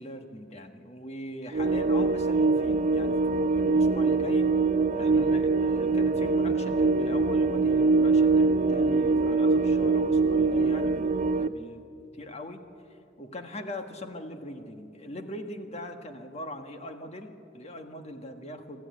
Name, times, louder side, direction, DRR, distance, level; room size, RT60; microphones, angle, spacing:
voice 1, 0.0-4.5 4.9-11.8 12.1-12.6 12.9-18.8, left 1 dB, 35° left, 6 dB, 1.7 m, -41 dB
sound 1, 1.5-11.5, right 3 dB, 40° right, 0.6 m, -23 dB
26.5 x 14.0 x 9.6 m, 2.7 s
head